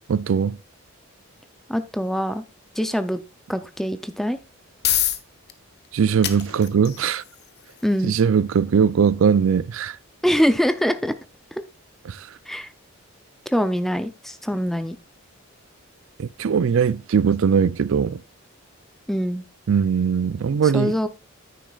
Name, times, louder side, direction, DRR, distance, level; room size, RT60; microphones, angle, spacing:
voice 1, 0.1-0.6 5.9-7.2 8.0-10.0 12.1-12.3 16.2-18.2 19.7-20.9, right 6 dB, 60° right, 0.4 m, -20 dB
voice 2, 1.7-2.4 2.8-3.2 3.5-4.4 7.8-8.1 10.2-11.1 11.5-11.6 12.5-12.7 13.5-15.0 19.1-19.4 20.6-21.1, equal, ahead, 0.5 m, -23 dB
sound 1, 4.4-19.2, left 12 dB, 45° left, 0.9 m, -35 dB
10.0 x 9.3 x 2.4 m
head